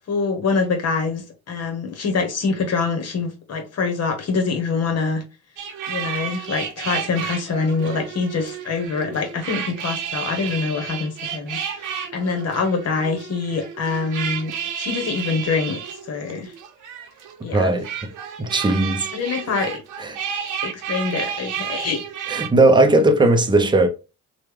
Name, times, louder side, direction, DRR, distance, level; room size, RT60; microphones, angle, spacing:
voice 1, 0.1-5.2 5.9-16.5 17.4-17.8 19.1-19.8 20.6-22.0, left 4 dB, 55° left, 1.1 m, -25 dB
sound 1, 5.6-22.5, right 8 dB, 90° right, 0.8 m, -31 dB
voice 2, 17.5-18.1 18.4-19.1 19.6-19.7 20.0-20.2 22.3-23.9, right 2 dB, 15° right, 0.6 m, -17 dB
3.2 x 2.3 x 3.2 m
cardioid pair, 90°, 30 cm